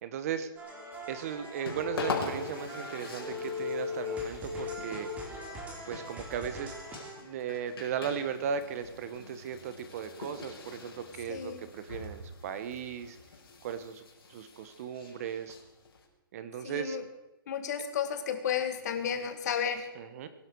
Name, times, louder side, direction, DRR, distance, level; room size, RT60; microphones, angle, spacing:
voice 1, 0.0-0.5 1.1-5.1 5.8-6.7 7.2-13.2 13.6-14.0 14.3-15.6 16.3-17.0 19.9-20.3, right 8 dB, 40° right, 11 dB, 1.2 m, -37 dB
sound 1, 0.6-7.1, left 3 dB, 10° right, 3.3 m, -39 dB
sound 2, 0.9-16.1, left 4 dB, 75° left, 4.9 m, -44 dB
voice 2, 11.3-11.6 16.6-17.0 17.5-19.9, left 8 dB, 45° left, 8 dB, 2.0 m, -32 dB
23.5 x 11.5 x 4.7 m, 1.0 s
hypercardioid pair, 160°, 13 cm